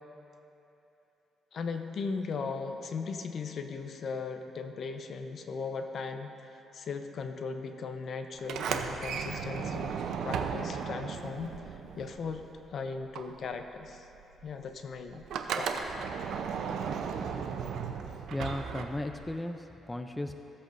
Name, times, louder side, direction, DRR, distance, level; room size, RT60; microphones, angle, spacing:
voice 1, 1.5-6.3 6.7-9.9 10.2-11.6 12.0-12.4 12.7-14.1 14.4-15.2 15.6-15.7, left 4 dB, 60° left, 7 dB, 0.7 m, -37 dB
Sliding door, 8.4-12.7 12.9-19.3, right 6 dB, 75° right, 0.6 m, -35 dB
voice 2, 18.3-20.4, left 1 dB, 10° left, 6 dB, 0.4 m, -36 dB
17.0 x 7.9 x 2.6 m, 2.9 s
cardioid pair, 90°, 0 cm